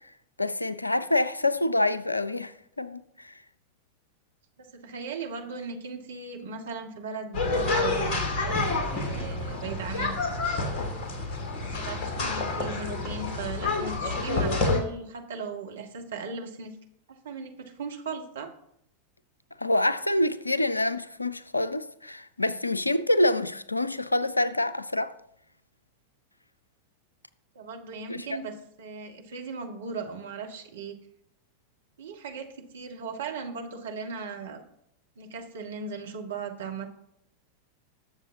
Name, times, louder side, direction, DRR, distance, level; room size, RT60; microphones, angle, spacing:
voice 1, 0.4-3.3 19.6-25.1 28.1-28.4, left 1 dB, 85° left, 0.5 m, -26 dB
voice 2, 4.6-10.1 10.5-10.6 11.6-16.7 17.1-18.5 27.5-31.0 32.0-34.6 35.2-36.9, right 4 dB, 65° right, 1.6 m, -38 dB
sound 1, 7.3-14.8, left 3 dB, 40° left, 2.2 m, -28 dB
20.0 x 7.2 x 2.8 m
figure-of-eight pair, 90°, 0 cm